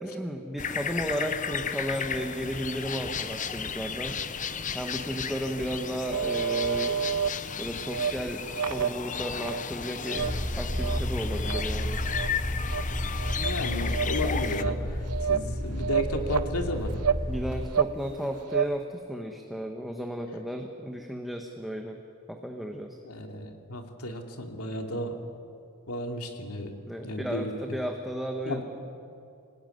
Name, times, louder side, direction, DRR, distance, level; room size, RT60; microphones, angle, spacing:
voice 1, 0.0-4.2 4.7-7.0 7.6-10.3 10.6-12.0 17.3-22.0 22.3-23.0 26.9-28.6, equal, ahead, 3 dB, 1.4 m, -34 dB
sound 1, 0.6-14.6, left 6 dB, 35° left, 0.9 m, -34 dB
sound 2, 6.1-7.3 7.8-8.1 8.5-9.6 10.0-10.3 10.7-11.0 11.4-11.6 12.0-12.3 12.7-12.8 13.2-13.6 13.9-14.1 14.5-14.7 15.1-15.5 15.8-16.5 17.0-17.2 17.5-17.9 18.2-18.7, right 7 dB, 85° right, 0.7 m, -28 dB
sound 3, 10.1-17.5, equal, 40° right, 4.5 m, -31 dB
voice 2, 13.3-15.0 15.3-17.0 23.0-25.4 25.9-26.7 27.0-27.8 28.5-28.6, left 1 dB, 80° left, 4 dB, 2.8 m, -33 dB
26.5 x 19.5 x 9.5 m, 2.5 s
head